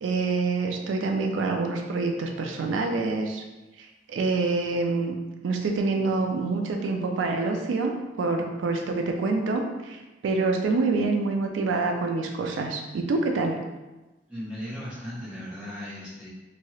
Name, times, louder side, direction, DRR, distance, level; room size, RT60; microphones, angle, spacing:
voice 1, 0.0-3.4 3.8-5.2 5.4-13.6, right 3 dB, 85° right, 3 dB, 0.3 m, -26 dB
voice 2, 14.3-16.3, equal, 5° right, -10 dB, 0.9 m, -37 dB
2.7 x 2.3 x 3.0 m, 1.1 s
head